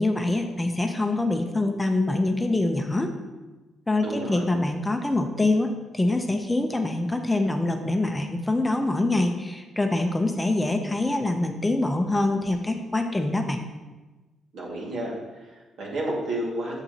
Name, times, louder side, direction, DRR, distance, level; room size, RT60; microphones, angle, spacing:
voice 1, 0.0-3.1 3.9-13.6, left 2 dB, 15° left, 5 dB, 0.6 m, -25 dB
voice 2, 4.0-4.4 14.5-16.8, right 1 dB, 70° right, -3 dB, 1.9 m, -31 dB
7.1 x 6.8 x 2.8 m, 1.2 s
cardioid pair, 90°, 0 cm